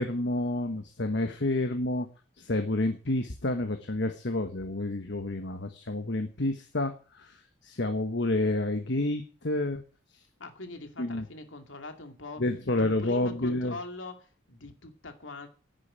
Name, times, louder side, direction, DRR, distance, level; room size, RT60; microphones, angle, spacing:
voice 1, 0.0-2.1 2.4-7.4 7.6-9.8 11.0-11.2 12.4-13.8, left 2 dB, 60° left, 6 dB, 1.4 m, -29 dB
voice 2, 10.4-12.4 12.7-15.5, left 2 dB, 75° left, 6 dB, 2.6 m, -42 dB
10.5 x 9.8 x 8.9 m, 0.38 s
head